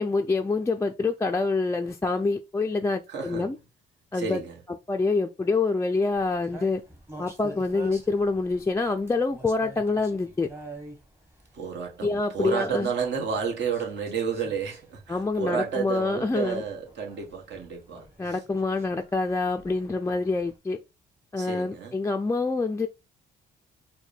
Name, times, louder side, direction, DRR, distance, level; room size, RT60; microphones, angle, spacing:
voice 1, 0.0-3.6 4.1-4.4 4.9-6.8 7.2-10.5 12.0-12.9 15.1-16.6 18.2-20.8 21.3-22.9, left 3 dB, 15° left, 0.3 m, -26 dB
voice 2, 3.1-3.5 4.1-4.6 11.5-18.4 21.4-21.9, right 6 dB, 60° right, 1.1 m, -31 dB
sound 1, 6.1-20.6, right 2 dB, 10° right, 1.1 m, -48 dB
4.5 x 2.2 x 3.4 m
cardioid pair, 90°, 20 cm